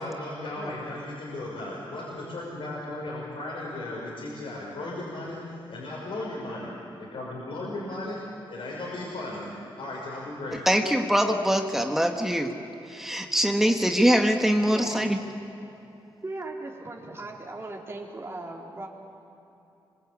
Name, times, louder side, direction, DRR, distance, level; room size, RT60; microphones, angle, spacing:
voice 1, 0.0-6.7 7.0-8.2 8.5-9.5 9.8-10.6, left 2 dB, 75° left, -5 dB, 6.2 m, -36 dB
voice 2, 10.5-12.5 12.9-15.2, equal, 5° right, 3 dB, 1.6 m, -23 dB
voice 3, 14.7-15.1 16.2-18.9, right 2 dB, 25° right, -2 dB, 3.9 m, -38 dB
27.0 x 24.5 x 8.6 m, 2.9 s
wide cardioid pair, 105°, 9 cm